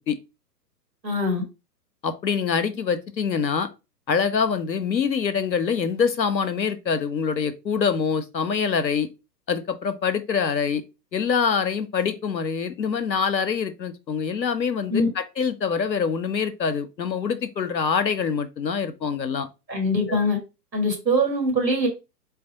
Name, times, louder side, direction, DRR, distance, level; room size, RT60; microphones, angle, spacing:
voice 1, 1.0-1.4 14.9-15.1 19.7-20.4 20.7-21.9, equal, 85° right, 1.7 m, -22 dB
voice 2, 2.0-3.7 4.1-9.1 9.5-10.8 11.1-19.5 20.1-20.2, left 6 dB, 90° left, 0.7 m, -25 dB
4.0 x 2.3 x 3.7 m
figure-of-eight pair, 115°, 50 cm